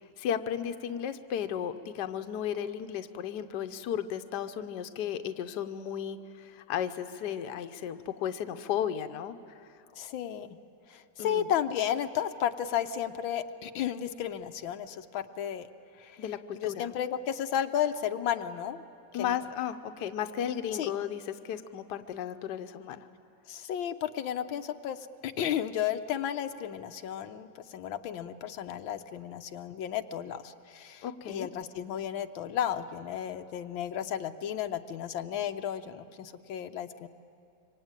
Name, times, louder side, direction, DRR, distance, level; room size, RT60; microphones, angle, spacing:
voice 1, 0.2-9.4 11.2-11.5 16.2-16.9 19.1-23.1 31.0-31.5, left 9 dB, 65° left, 8 dB, 1.4 m, -34 dB
voice 2, 10.0-10.6 10.9-15.7 16.0-16.2 16.6-18.8 19.1-19.4 20.7-20.9 23.5-37.1, left 9 dB, 85° left, 7 dB, 1.6 m, -33 dB
25.5 x 24.5 x 8.9 m, 2.5 s
omnidirectional pair, 2.1 m